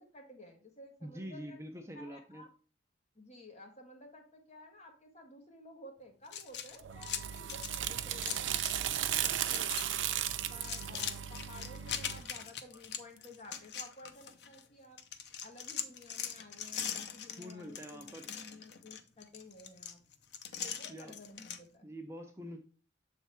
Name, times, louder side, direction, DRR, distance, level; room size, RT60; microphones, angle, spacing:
voice 1, 0.0-1.6 1.9-2.5 3.1-10.0 10.5-15.0 15.4-20.0 20.6-21.9, left 1 dB, 35° left, 2 dB, 1.5 m, -54 dB
voice 2, 1.0-2.4 17.4-18.2 20.9-21.1 21.8-22.6, equal, 15° right, 3 dB, 0.6 m, -45 dB
sound 1, 6.3-8.8 9.1-9.9 10.2-14.6 15.0-21.6, left 8 dB, 65° left, 0.7 m, -41 dB
sound 2, 6.8-12.3, right 10 dB, 85° right, 0.5 m, -36 dB
7.0 x 3.5 x 4.3 m, 0.38 s
head